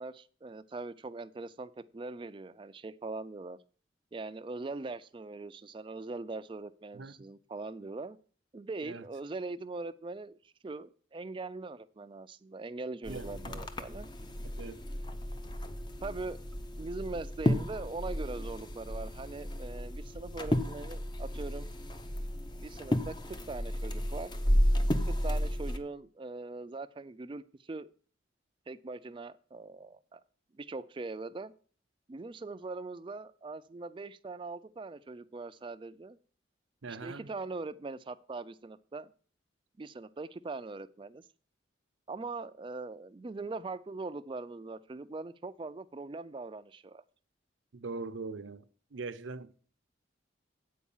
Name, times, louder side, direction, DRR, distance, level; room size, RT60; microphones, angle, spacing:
voice 1, 0.0-3.6 4.1-8.2 8.5-14.1 16.0-16.4 16.8-21.7 22.6-23.2 23.5-24.3 25.1-27.9 28.7-30.2 30.5-31.5 32.1-36.2 36.9-39.1 39.8-41.2 42.1-47.0, right 3 dB, 25° right, 0.3 m, -41 dB
sound 1, 13.0-25.8, equal, 25° left, 0.6 m, -33 dB
voice 2, 13.1-13.7 14.6-14.8 36.8-37.3 47.7-48.6 48.9-49.6, right 3 dB, 80° right, 0.7 m, -41 dB
8.4 x 4.7 x 7.1 m
head